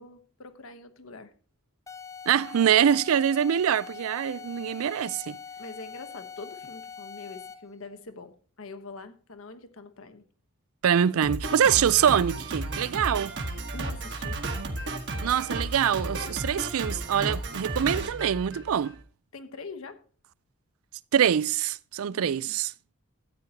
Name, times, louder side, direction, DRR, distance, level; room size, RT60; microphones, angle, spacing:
voice 1, 0.0-1.3 5.6-10.2 13.7-14.4 19.3-20.0 22.0-22.6, left 3 dB, 70° left, 1.1 m, -44 dB
sound 1, 1.9-7.8, left 6 dB, 15° left, 0.4 m, -43 dB
voice 2, 2.3-5.4 10.8-13.3 15.2-19.0 21.1-22.7, right 9 dB, 75° right, 0.4 m, -24 dB
Drum kit, 11.2-19.0, right 2 dB, 50° right, 1.3 m, -33 dB
13.0 x 9.1 x 2.9 m
head